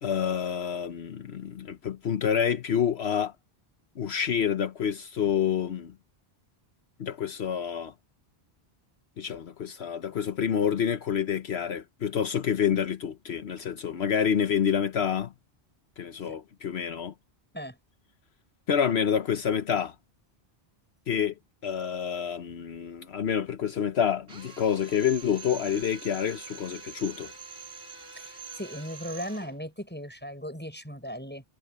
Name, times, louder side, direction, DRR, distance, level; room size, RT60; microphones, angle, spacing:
voice 1, 0.0-3.3 4.0-5.9 7.0-7.9 9.2-15.3 16.0-17.1 18.7-19.9 21.1-21.3 21.6-27.3, left 8 dB, 75° left, 1.2 m, -28 dB
Drill, 24.3-29.6, right 6 dB, 75° right, 4.1 m, -44 dB
voice 2, 28.2-31.4, equal, 10° left, 7.1 m, -37 dB
omnidirectional pair, 1.1 m